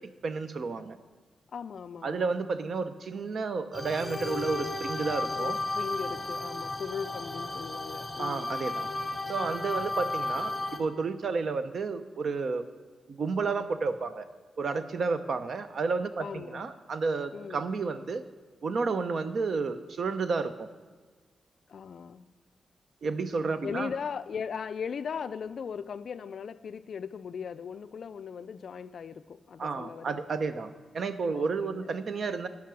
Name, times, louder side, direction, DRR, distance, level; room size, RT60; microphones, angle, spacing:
voice 1, 0.2-1.0 2.0-5.6 8.2-8.9 9.3-10.5 10.8-12.6 13.1-14.2 14.6-18.2 18.6-20.7 23.0-23.9 29.6-32.5, right 4 dB, 55° right, 0.5 m, -31 dB
voice 2, 1.5-2.3 5.3-8.5 16.2-16.7 17.3-17.7 21.7-22.3 23.6-30.3 31.3-31.9, left 6 dB, 60° left, 0.3 m, -38 dB
sound 1, 3.7-10.8, left 2 dB, ahead, 0.8 m, -34 dB
10.5 x 5.8 x 6.2 m
wide cardioid pair, 155°, 0 cm